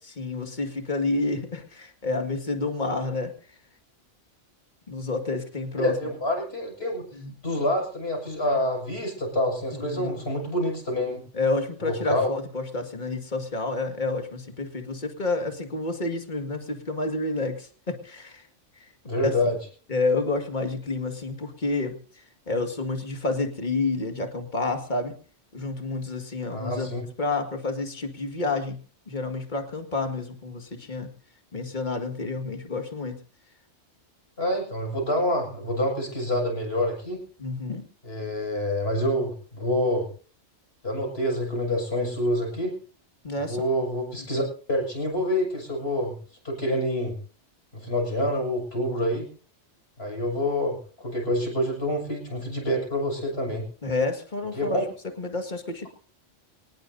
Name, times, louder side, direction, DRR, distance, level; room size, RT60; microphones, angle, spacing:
voice 1, 0.2-3.3 4.9-6.0 7.1-7.3 9.9-10.2 11.3-18.4 18.8-18.9 19.2-19.3 19.9-25.1 25.5-26.9 27.2-28.8 29.1-31.1 31.5-33.2 37.4-37.8 43.2-43.6 53.8-54.8 55.2-55.9, left 3 dB, 40° left, 5 dB, 2.1 m, -29 dB
voice 2, 5.8-7.0 7.4-11.2 11.8-12.3 19.0-19.6 26.5-27.0 34.4-37.2 38.0-40.1 40.8-42.8 43.4-44.4 44.7-46.2 46.4-47.2 47.7-49.3 50.0-53.6 54.6-54.8, left 1 dB, 55° left, 1 dB, 6.7 m, -27 dB
24.5 x 19.0 x 2.7 m, 0.41 s
omnidirectional pair, 1.2 m